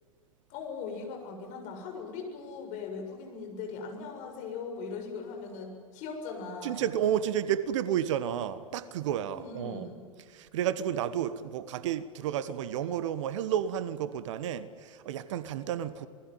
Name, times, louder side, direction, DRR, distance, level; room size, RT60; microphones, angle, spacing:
voice 1, 0.5-6.9 9.3-10.0, left 4 dB, 45° left, 7.1 m, -39 dB
voice 2, 6.6-9.9 10.3-16.1, right 10 dB, 60° right, 1.4 m, -31 dB
27.5 x 20.0 x 9.2 m
figure-of-eight pair, 95°, 18 cm